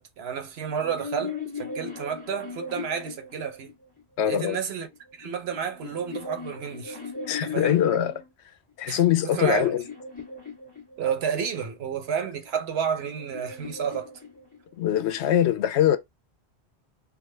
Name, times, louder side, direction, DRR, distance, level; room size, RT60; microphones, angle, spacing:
voice 1, 0.0-3.7 4.2-4.9 5.1-7.0 7.4-7.8 8.9-9.7 11.0-14.1, right 7 dB, 70° right, 1.0 m, -31 dB
sound 1, 0.6-4.0 4.9-8.3 9.0-11.4 12.4-14.9, left 4 dB, 10° left, 1.2 m, -39 dB
voice 2, 4.2-4.6 7.3-8.1 8.8-9.8 14.8-16.0, left 11 dB, 85° left, 0.9 m, -22 dB
3.5 x 2.1 x 3.2 m
omnidirectional pair, 1.1 m